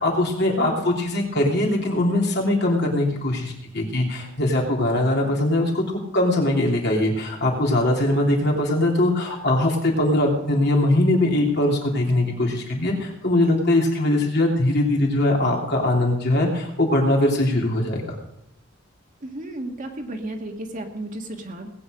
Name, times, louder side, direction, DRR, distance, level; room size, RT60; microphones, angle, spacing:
voice 1, 0.0-5.8 6.1-18.1, left 1 dB, 55° left, -1 dB, 3.3 m, -21 dB
voice 2, 19.2-21.7, right 1 dB, 40° right, 3 dB, 1.8 m, -33 dB
19.5 x 8.8 x 5.1 m, 0.81 s
head